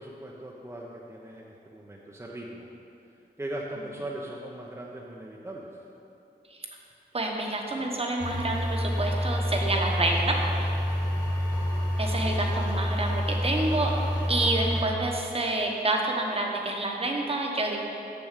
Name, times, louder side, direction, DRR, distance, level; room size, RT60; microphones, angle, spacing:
voice 1, 0.0-2.7 3.4-5.8 10.9-11.2, right 1 dB, 15° right, -3 dB, 0.7 m, -39 dB
voice 2, 7.1-10.7 12.0-13.9 14.3-17.8, right 2 dB, 35° right, 0 dB, 1.1 m, -28 dB
sound 1, 8.2-14.8, equal, 20° left, 1.5 m, -28 dB
7.0 x 6.8 x 6.6 m, 2.9 s
wide cardioid pair, 115°, 17 cm